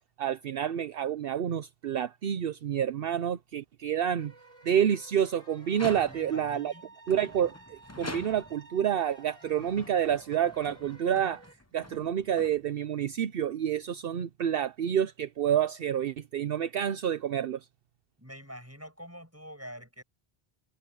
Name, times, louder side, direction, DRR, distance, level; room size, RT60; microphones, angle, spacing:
voice 1, 0.0-4.3 4.6-6.7 7.1-11.4 11.7-17.6, right 9 dB, 65° right, 0.9 m, -29 dB
sound 1, 4.2-11.5, right 2 dB, 60° left, 5.4 m, -54 dB
sound 2, 5.6-6.5 7.1-8.7 9.4-13.0, left 2 dB, 15° left, 1.0 m, -45 dB
voice 2, 5.9-6.9 18.2-20.0, equal, 15° right, 7.7 m, -46 dB
omnidirectional pair, 1.0 m